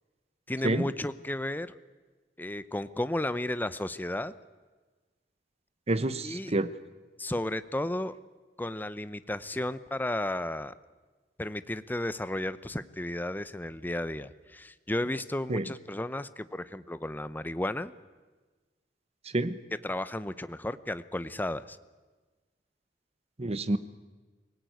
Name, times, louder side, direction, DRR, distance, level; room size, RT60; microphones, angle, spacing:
voice 1, 0.5-1.8 2.4-4.3 6.2-6.5 7.2-8.1 8.6-10.7 11.4-17.9 19.8-21.8, left 1 dB, 10° left, 14 dB, 0.7 m, -33 dB
voice 2, 5.9-6.7 15.5-15.6 19.3-19.6 23.4-23.8, right 2 dB, 35° right, 13 dB, 1.0 m, -28 dB
24.5 x 17.5 x 9.3 m, 1.3 s
head